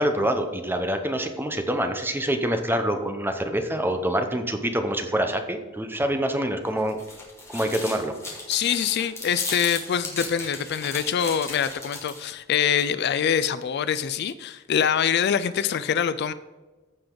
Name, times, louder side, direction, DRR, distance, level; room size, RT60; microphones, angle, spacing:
voice 1, 0.0-7.0 7.5-8.1, right 1 dB, 10° right, 6 dB, 0.8 m, -26 dB
sound 1, 6.7-12.3, left 3 dB, 15° left, 2.0 m, -36 dB
voice 2, 8.5-16.3, left 8 dB, 55° left, 13 dB, 0.4 m, -24 dB
15.0 x 5.2 x 3.9 m, 1.2 s
head